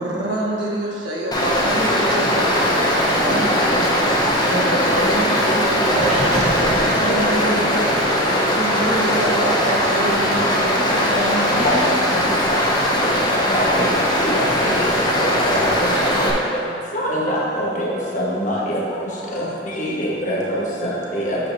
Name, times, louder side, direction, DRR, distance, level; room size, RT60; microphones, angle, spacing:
voice 1, 0.0-3.8 4.4-7.7 8.5-12.4, right 1 dB, 80° right, -4 dB, 1.3 m, -26 dB
Stream, 1.3-16.3, equal, 25° left, 0.9 m, -19 dB
voice 2, 4.5-5.4 7.0-7.2 7.7-7.8 8.9-9.2 11.6-12.0 12.5-12.6 13.5-14.7 15.2-15.7 16.9-18.8 19.3-19.5 19.8-21.4, equal, 45° left, -5 dB, 1.4 m, -24 dB
Gurgling, 5.8-8.0, right 1 dB, 40° right, 1.1 m, -28 dB
voice 3, 17.8-18.1 18.6-18.8 19.2-19.3 20.7-20.9 21.3-21.5, right 1 dB, 10° right, 0 dB, 0.6 m, -42 dB
8.2 x 7.1 x 2.7 m, 2.6 s
head